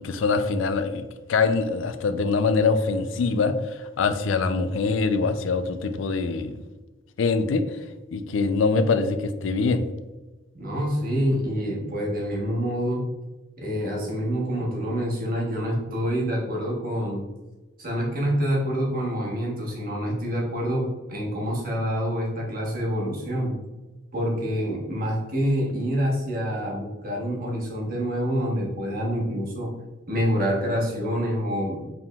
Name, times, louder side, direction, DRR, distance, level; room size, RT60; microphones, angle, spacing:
voice 1, 0.0-3.5 4.0-6.6 7.2-7.6 8.1-9.8, left 4 dB, 75° left, 10 dB, 0.4 m, -23 dB
voice 2, 10.5-13.0 13.6-17.2 17.8-23.5 24.1-29.7 30.1-31.8, equal, 45° right, -2 dB, 1.2 m, -27 dB
4.7 x 3.6 x 2.3 m, 1.1 s
head